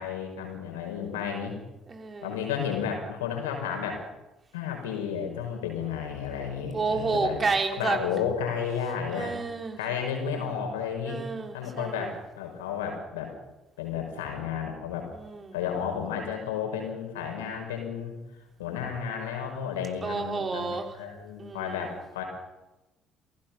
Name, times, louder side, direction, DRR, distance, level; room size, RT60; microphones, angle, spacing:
voice 1, 0.0-1.5 2.2-4.0 4.5-7.4 7.8-9.4 9.8-11.2 11.5-13.3 13.8-15.1 15.5-18.1 18.6-22.2, left 7 dB, 75° left, 3 dB, 5.1 m, -32 dB
voice 2, 1.9-2.4 6.7-8.1 9.1-9.8 11.0-12.1 15.1-15.5 20.0-20.9 21.4-21.8, right 4 dB, 35° right, 5 dB, 3.5 m, -30 dB
27.5 x 18.0 x 5.9 m, 1.0 s
figure-of-eight pair, 50°, 0 cm